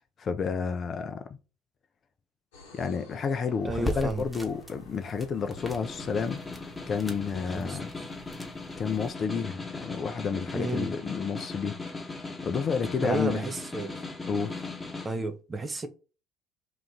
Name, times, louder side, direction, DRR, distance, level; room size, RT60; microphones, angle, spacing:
voice 1, 0.2-1.4 2.7-6.4 6.9-7.9 8.8-11.7 12.4-13.4 14.3-14.7, left 6 dB, 40° left, 0.4 m, -30 dB
sound 1, 2.5-7.6, left 3 dB, 75° left, 0.8 m, -52 dB
sound 2, 3.6-9.1, right 1 dB, 10° right, 1.1 m, -41 dB
voice 2, 3.6-4.3 7.5-7.8 10.5-10.9 13.0-14.0 15.0-15.9, right 2 dB, 25° right, 0.6 m, -32 dB
Snare drum, 5.4-15.1, left 3 dB, 20° left, 1.1 m, -39 dB
2.9 x 2.4 x 3.5 m
hypercardioid pair, 60°, 0 cm